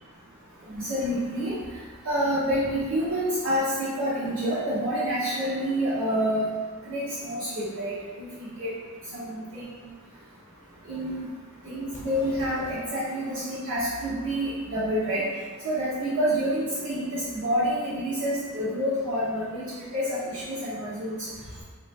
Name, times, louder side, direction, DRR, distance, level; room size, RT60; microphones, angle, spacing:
voice 1, 0.7-1.5 2.0-6.5 6.9-8.7 9.1-9.6 10.9-11.3 11.6-15.2 15.6-19.6 19.9-21.1, equal, 80° right, -13 dB, 1.2 m, -28 dB
sound 1, 11.9-12.7, equal, 35° left, 0.7 m, -44 dB
3.0 x 2.8 x 3.5 m, 1.5 s
head